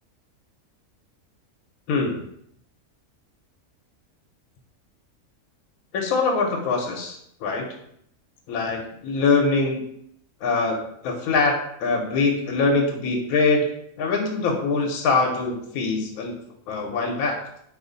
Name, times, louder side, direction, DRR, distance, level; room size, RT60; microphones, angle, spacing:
voice 1, 1.9-2.2 5.9-7.6 8.5-9.8 10.4-10.8 11.0-11.5 11.8-13.7 14.0-16.4 16.7-17.4, left 4 dB, 75° left, 1 dB, 1.0 m, -23 dB
2.6 x 2.4 x 3.8 m, 0.72 s
omnidirectional pair, 1.6 m